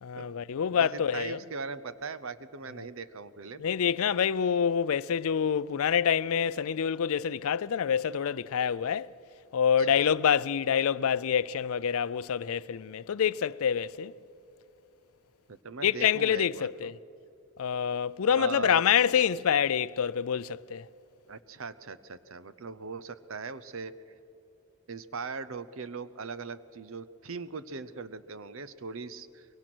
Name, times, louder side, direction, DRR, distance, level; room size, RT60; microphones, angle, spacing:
voice 1, 0.0-1.4 3.6-9.1 9.5-14.1 15.8-16.9 17.6-20.9, left 8 dB, 75° left, 0.4 m, -26 dB
voice 2, 0.7-3.6 9.8-10.2 15.5-16.9 18.4-18.8 21.3-23.9 24.9-29.5, right 4 dB, 65° right, 0.8 m, -40 dB
23.5 x 23.0 x 6.1 m
head